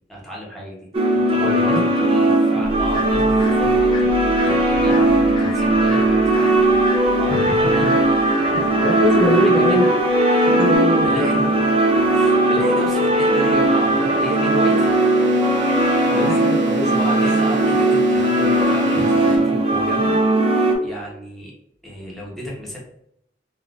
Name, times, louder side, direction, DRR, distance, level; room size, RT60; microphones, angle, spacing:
voice 1, 0.1-0.8 1.1-6.6 7.2-7.9 8.3-9.9 11.0-14.9 16.1-16.3 16.8-20.2 20.8-21.5 21.8-22.8, equal, ahead, -4 dB, 0.8 m, -32 dB
sound 1, 0.9-20.8, right 1 dB, 35° right, 0.4 m, -18 dB
voice 2, 1.4-1.8 7.5-7.9 8.5-9.9 10.4-11.3 16.0-17.1, left 1 dB, 70° left, -4 dB, 1.0 m, -23 dB
sound 2, 2.6-10.8, left 2 dB, 25° left, 0.5 m, -33 dB
sound 3, 11.6-19.4, right 4 dB, 90° right, 1.3 m, -33 dB
3.4 x 2.3 x 2.4 m, 0.74 s
head